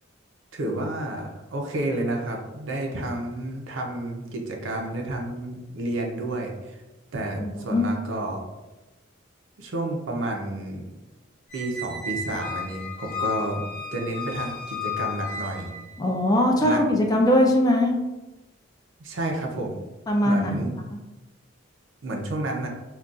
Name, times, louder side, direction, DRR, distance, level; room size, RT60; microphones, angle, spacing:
voice 1, 0.5-6.8 7.1-8.4 9.6-10.9 11.5-13.6 13.9-15.8 16.6-16.8 19.0-19.8 20.2-20.8 22.0-22.7, right 1 dB, 70° right, 1 dB, 0.5 m, -30 dB
voice 2, 7.4-7.8 16.0-18.0 20.1-20.6, left 1 dB, 20° left, 0 dB, 0.3 m, -21 dB
Squeak, 11.5-16.0, left 4 dB, 40° left, 0.8 m, -33 dB
3.8 x 2.3 x 2.4 m, 1.1 s
head